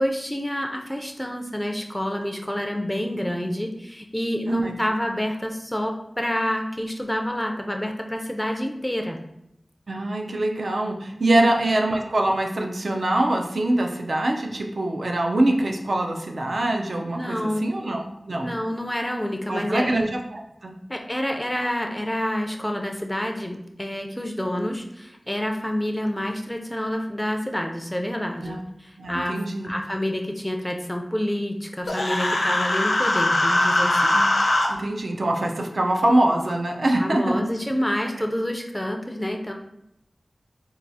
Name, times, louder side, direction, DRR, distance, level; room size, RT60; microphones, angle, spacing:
voice 1, 0.0-9.2 11.4-11.5 17.1-17.7 18.4-20.0 20.9-29.3 29.6-34.2 37.0-39.5, equal, 10° left, 3 dB, 0.4 m, -28 dB
voice 2, 9.9-18.5 19.5-20.8 28.4-28.6 29.0-29.7 34.1-34.2 34.7-37.4, right 1 dB, 70° right, 2 dB, 0.5 m, -24 dB
Human voice, 31.9-34.7, left 1 dB, 75° left, 0.7 m, -21 dB
4.5 x 2.3 x 2.7 m, 0.82 s
wide cardioid pair, 70°, 0 cm